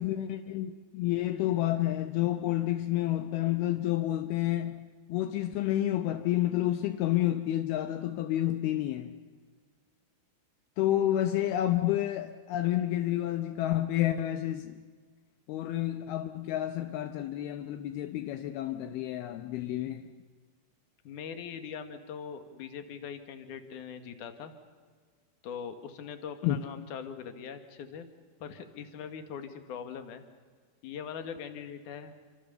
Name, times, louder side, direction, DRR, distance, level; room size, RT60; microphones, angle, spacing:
voice 1, 0.0-4.8 5.1-9.1 10.8-14.7 15.5-20.1 26.4-26.6, left 13 dB, 80° left, 2.7 m, -29 dB
voice 2, 21.0-24.5 25.4-28.1 28.4-30.2 30.8-32.1, left 7 dB, 60° left, 2.8 m, -41 dB
28.0 x 25.0 x 6.8 m
omnidirectional pair, 4.5 m